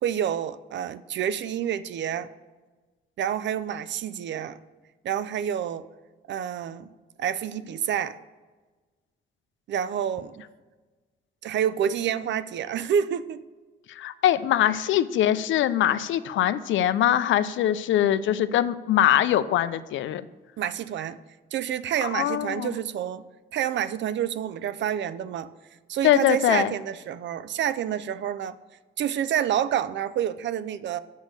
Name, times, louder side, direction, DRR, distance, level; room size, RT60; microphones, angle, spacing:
voice 1, 0.0-2.3 3.2-4.6 5.0-5.9 6.3-6.9 7.2-8.2 9.7-10.5 11.4-13.4 20.6-21.2 21.5-23.2 23.5-25.5 25.9-28.6 29.0-31.0, right 9 dB, 65° right, 15 dB, 0.4 m, -28 dB
voice 2, 13.9-20.2 22.0-22.7 26.0-26.7, left 11 dB, 75° left, 14 dB, 0.4 m, -22 dB
6.2 x 5.5 x 6.4 m, 1.3 s
supercardioid pair, 60°, 20 cm